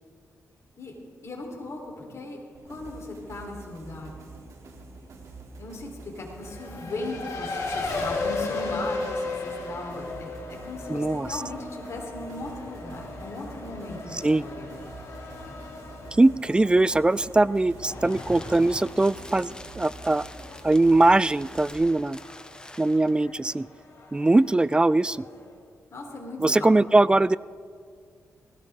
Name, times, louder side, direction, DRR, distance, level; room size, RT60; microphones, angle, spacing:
voice 1, 1.2-2.4 2.6-4.1 5.6-10.3 10.6-14.7 25.9-26.7, left 2 dB, 55° left, 0 dB, 3.9 m, -37 dB
sound 1, 2.5-21.7, right 3 dB, 70° right, 3.1 m, -46 dB
Race car auto racing, 6.4-25.5, left 3 dB, 75° left, 2.9 m, -37 dB
voice 2, 10.9-11.4 14.2-14.4 16.2-20.2 20.6-22.2 22.8-23.7 24.1-25.2 26.4-27.4, right 2 dB, 15° right, 19 dB, 0.3 m, -21 dB
sound 2, 17.6-23.2, left 1 dB, 15° left, 0.9 m, -47 dB
19.0 x 16.0 x 3.7 m, 2.1 s
cardioid pair, 75°, 6 cm